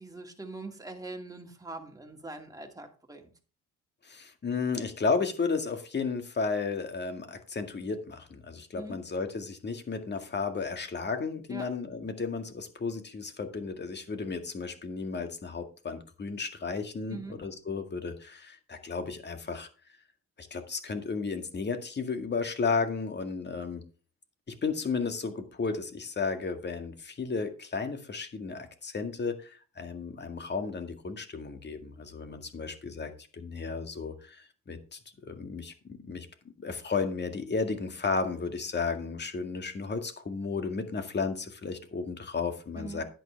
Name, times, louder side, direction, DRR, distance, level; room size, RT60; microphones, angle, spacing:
voice 1, 0.0-3.3 8.8-9.0 11.5-11.6 17.1-17.4 42.8-43.0, right 2 dB, 10° right, 3 dB, 2.5 m, -42 dB
voice 2, 4.0-19.7 20.4-23.9 24.5-36.3 36.6-43.0, left 4 dB, 35° left, 7 dB, 2.0 m, -33 dB
10.5 x 9.3 x 3.5 m, 0.37 s
cardioid pair, 90°, 30 cm